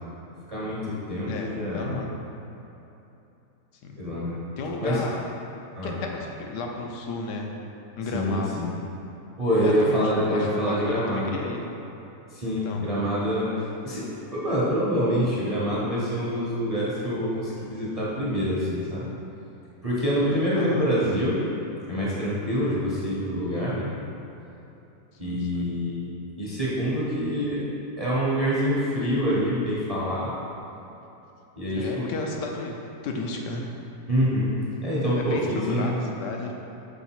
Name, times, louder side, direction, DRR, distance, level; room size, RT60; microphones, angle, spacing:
voice 1, 0.5-1.9 4.0-4.4 4.8-5.0 5.7-6.0 8.1-8.7 9.4-11.3 12.3-19.1 19.8-21.5 21.9-23.9 25.2-27.6 28.0-30.4 31.6-32.1 34.1-34.5 34.8-36.0, equal, 35° right, -8 dB, 0.6 m, -26 dB
voice 2, 1.3-2.1 3.8-4.0 4.6-5.3 5.8-7.5 8.0-8.7 9.6-11.6 12.6-12.8 20.6-20.9 25.2-25.7 31.8-33.7 35.2-36.5, left 3 dB, 85° left, 1 dB, 1.3 m, -33 dB
5.9 x 3.9 x 4.4 m, 2.9 s
omnidirectional pair, 1.8 m